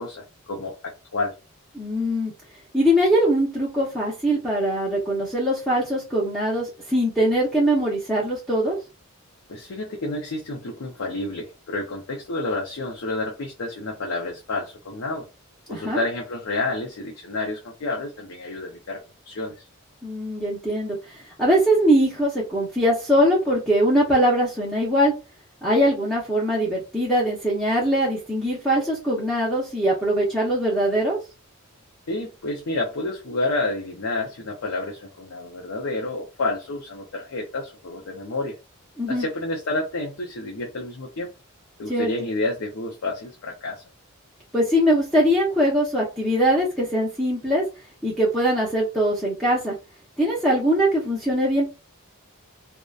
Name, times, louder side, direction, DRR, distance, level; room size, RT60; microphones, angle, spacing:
voice 1, 0.0-1.4 9.5-15.3 15.7-19.6 32.1-38.6 39.1-41.3 41.8-43.8, left 2 dB, 65° left, 0.5 m, -29 dB
voice 2, 1.7-2.3 2.7-8.8 15.7-16.0 20.0-21.0 21.4-25.1 25.6-31.2 39.0-39.2 41.9-42.1 44.5-47.6 48.0-49.7 50.2-51.7, equal, ahead, 0.6 m, -22 dB
2.7 x 2.1 x 2.3 m
head